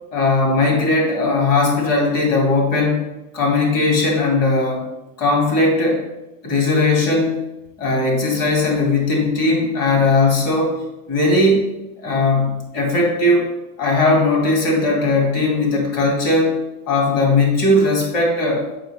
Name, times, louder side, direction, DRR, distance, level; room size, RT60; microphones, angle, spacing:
voice 1, 0.1-3.1 3.3-4.8 5.2-6.0 6.4-7.4 7.8-10.8 11.1-11.7 12.0-13.5 13.8-16.6 16.9-18.7, left 2 dB, 55° left, -1 dB, 2.5 m, -18 dB
6.9 x 5.5 x 3.4 m, 0.96 s
cardioid pair, 165°, 33 cm